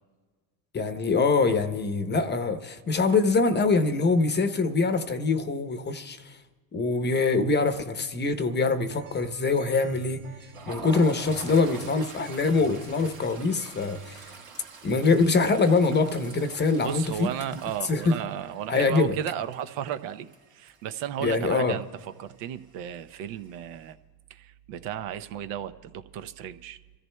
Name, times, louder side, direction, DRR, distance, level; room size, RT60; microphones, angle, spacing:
voice 1, 0.7-6.4 6.7-10.2 10.7-14.2 14.8-17.3 17.9-18.2 18.7-19.2 21.2-21.8, left 4 dB, 20° left, 0.8 m, -24 dB
sound 1, 8.9-14.3, right 5 dB, 40° right, 2.0 m, -49 dB
Toilet flush, 10.2-21.0 21.3-21.5 21.8-22.0 22.9-23.5, right 5 dB, 85° right, 3.3 m, -45 dB
voice 2, 16.8-24.0 24.3-26.8, right 10 dB, 65° right, 0.8 m, -34 dB
29.0 x 14.0 x 2.2 m
supercardioid pair, 90°, 48 cm